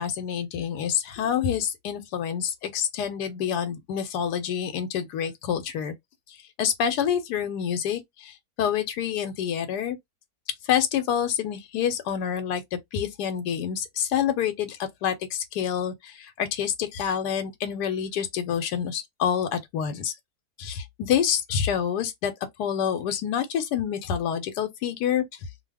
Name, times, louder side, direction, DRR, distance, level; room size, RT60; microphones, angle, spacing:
voice 1, 0.0-5.9 6.3-10.0 10.6-20.1 20.6-22.3 22.6-25.2, left 8 dB, 90° left, 1.2 m, -27 dB
2.6 x 2.3 x 3.3 m
omnidirectional pair, 1.7 m